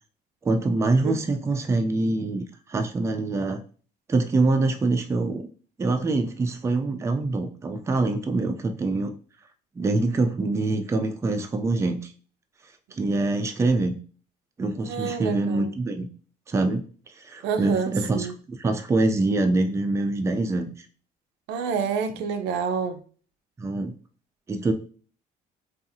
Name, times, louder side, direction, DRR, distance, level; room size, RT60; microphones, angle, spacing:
voice 1, 0.4-3.6 4.1-5.5 5.8-9.1 9.8-12.1 12.9-14.0 14.6-16.1 16.5-16.8 17.2-20.9 23.6-23.9 24.5-24.7, right 2 dB, 15° right, 6 dB, 0.3 m, -25 dB
voice 2, 14.8-15.7 17.4-18.4 21.5-23.0, right 6 dB, 90° right, 8 dB, 0.4 m, -28 dB
2.6 x 2.4 x 2.6 m, 0.41 s
cardioid pair, 110°, 17 cm